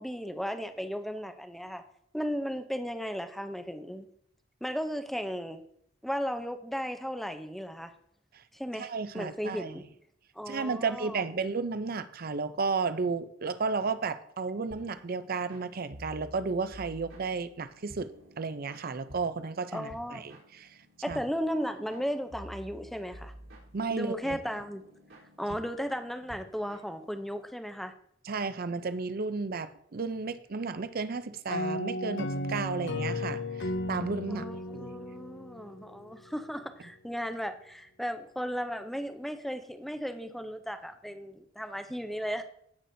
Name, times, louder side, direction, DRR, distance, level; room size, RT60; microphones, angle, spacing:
voice 1, 0.0-1.8 2.1-4.1 4.6-5.6 6.0-7.9 8.5-9.9 10.4-11.2 19.7-20.2 21.0-23.3 23.9-24.8 25.4-27.9 34.3-42.4, equal, ahead, 7 dB, 0.6 m, -35 dB
voice 2, 8.8-9.8 10.5-18.1 18.4-20.7 21.1-21.2 23.7-24.4 28.2-34.5 34.8-34.9, right 4 dB, 50° right, 12 dB, 0.5 m, -33 dB
sound 1, 14.7-27.5, equal, 80° right, 3.7 m, -51 dB
sound 2, 31.5-36.1, left 1 dB, 60° left, 0.6 m, -35 dB
15.5 x 6.0 x 2.7 m, 0.69 s
head